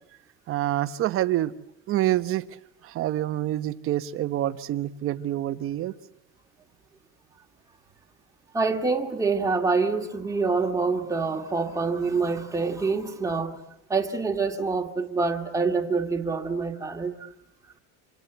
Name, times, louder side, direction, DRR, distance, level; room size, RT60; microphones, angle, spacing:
voice 1, 0.5-1.5 1.9-2.5 2.8-5.9, right 13 dB, 40° right, 1.2 m, -27 dB
voice 2, 8.5-13.6 13.9-17.3, right 4 dB, 10° right, 2.1 m, -26 dB
27.5 x 26.5 x 8.1 m
cardioid pair, 165°, 34 cm